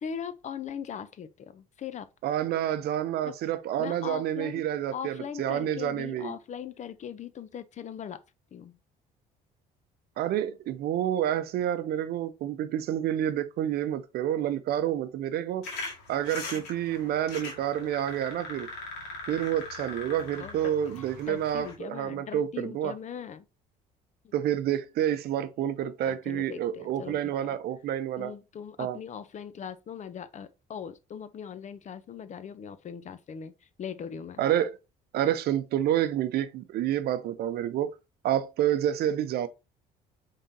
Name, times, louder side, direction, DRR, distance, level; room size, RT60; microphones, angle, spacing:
voice 1, 0.0-2.1 3.2-3.3 3.8-4.6 4.9-8.2 8.5-8.8 16.5-16.6 20.3-23.4 24.2-24.3 26.1-27.5 28.2-34.4, left 8 dB, 45° left, 0.6 m, -40 dB
voice 2, 2.2-6.3 10.2-15.7 16.1-18.7 19.3-22.9 24.3-28.3 28.8-29.0 34.4-34.7 35.1-37.9 38.2-39.5, right 11 dB, 65° right, 0.6 m, -29 dB
sound 1, 15.6-21.7, left 3 dB, 90° left, 1.9 m, -41 dB
5.2 x 3.7 x 2.8 m
supercardioid pair, 85°, 17 cm